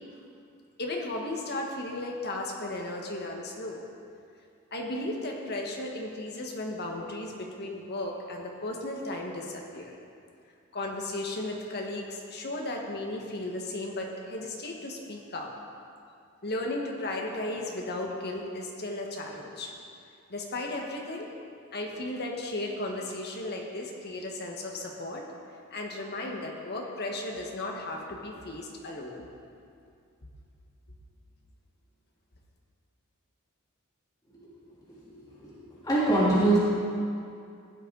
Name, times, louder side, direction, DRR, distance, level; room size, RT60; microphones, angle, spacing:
voice 1, 0.8-3.8 4.7-10.0 10.7-15.5 16.4-19.7 20.3-21.3 21.7-25.2 25.7-29.3, left 2 dB, 50° left, 0 dB, 1.6 m, -35 dB
voice 2, 35.8-36.6, right 2 dB, 20° left, -10 dB, 3.2 m, -22 dB
15.5 x 10.0 x 4.0 m, 2.4 s
head